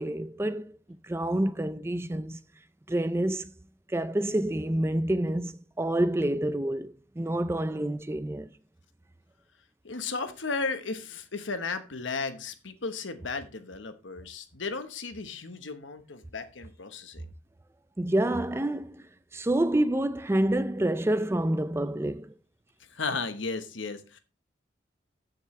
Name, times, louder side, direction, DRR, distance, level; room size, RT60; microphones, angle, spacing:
voice 1, 0.0-2.4 2.9-3.5 3.9-8.5 18.0-19.0 19.3-22.3, right 1 dB, 15° right, 0.4 m, -28 dB
voice 2, 9.8-17.2 22.9-24.2, left 4 dB, 80° left, 1.2 m, -35 dB
14.5 x 6.6 x 3.3 m
head